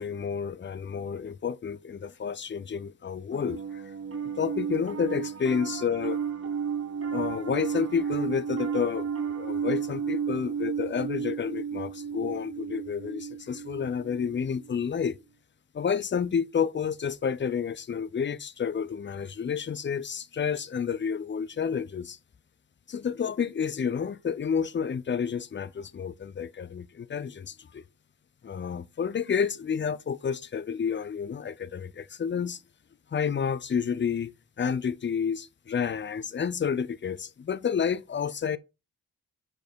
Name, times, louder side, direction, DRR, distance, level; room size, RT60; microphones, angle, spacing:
voice 1, 0.0-3.6 4.4-6.2 7.1-15.2 15.7-22.2 22.9-27.8 28.4-32.6 33.1-34.3 34.6-38.6, left 7 dB, 30° left, 0.6 m, -30 dB
Piano, 3.3-14.8, right 7 dB, 35° right, 1.4 m, -33 dB
5.0 x 4.4 x 4.5 m
supercardioid pair, 45°, 38 cm